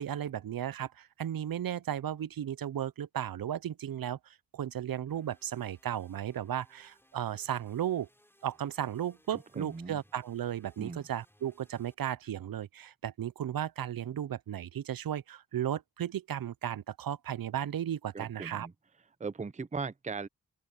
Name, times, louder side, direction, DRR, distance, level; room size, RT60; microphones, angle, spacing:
voice 1, 0.0-8.1 8.4-18.7, right 10 dB, 70° right, 0.6 m, -35 dB
sound 1, 5.1-11.9, equal, 5° left, 5.4 m, -66 dB
voice 2, 9.3-10.0 10.8-11.1 18.1-18.7 19.2-20.3, right 4 dB, 20° right, 0.6 m, -39 dB
open air
wide cardioid pair, 70°, 36 cm